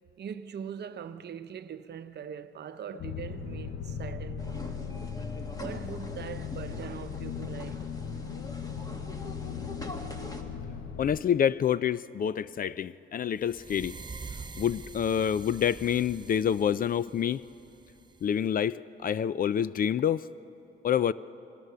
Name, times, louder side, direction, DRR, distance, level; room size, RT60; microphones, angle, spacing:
voice 1, 0.2-4.7 5.6-7.8, right 8 dB, 55° right, 0.8 m, -41 dB
sound 1, 3.0-11.2, left 6 dB, 70° left, 1.0 m, -38 dB
sound 2, 4.4-10.4, left 1 dB, 20° left, 1.8 m, -44 dB
voice 2, 11.0-13.9 14.6-17.4 18.2-20.2 20.8-21.1, left 9 dB, 45° left, 0.4 m, -27 dB
sound 3, 13.4-18.4, right 4 dB, 20° right, 0.7 m, -45 dB
23.5 x 17.5 x 6.8 m
cardioid pair, 105°, 20 cm